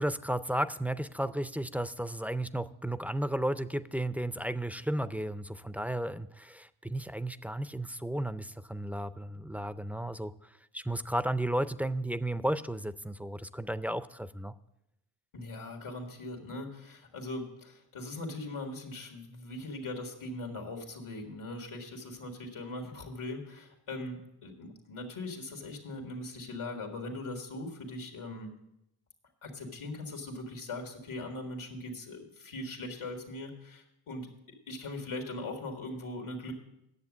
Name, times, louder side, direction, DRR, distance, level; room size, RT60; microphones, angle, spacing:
voice 1, 0.0-10.3 10.7-14.5, right 1 dB, 5° right, 13 dB, 0.3 m, -33 dB
voice 2, 15.3-28.5 29.4-34.3 34.7-36.5, left 2 dB, 90° left, 3 dB, 1.8 m, -40 dB
9.8 x 7.3 x 7.1 m, 0.84 s
cardioid pair, 50°, 48 cm